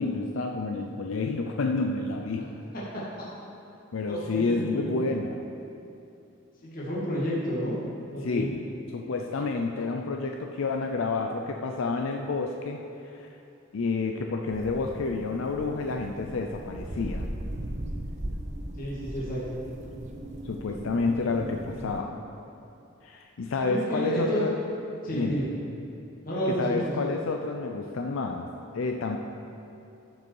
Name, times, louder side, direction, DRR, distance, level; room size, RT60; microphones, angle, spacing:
voice 1, 0.0-2.5 3.9-5.4 8.2-8.6 8.9-13.3 13.7-17.3 20.4-22.2 23.0-24.5 25.1-25.5 26.5-28.5 28.7-29.2, left 3 dB, 70° left, 3 dB, 0.5 m, -29 dB
voice 2, 4.1-4.8 6.6-7.8 8.1-8.5 18.8-19.6 23.6-24.4 25.0-25.5 26.2-26.9, equal, 40° left, -8 dB, 2.0 m, -30 dB
sound 1, 14.5-22.0, right 1 dB, 35° right, 0.6 m, -38 dB
13.5 x 5.3 x 4.7 m, 2.7 s
head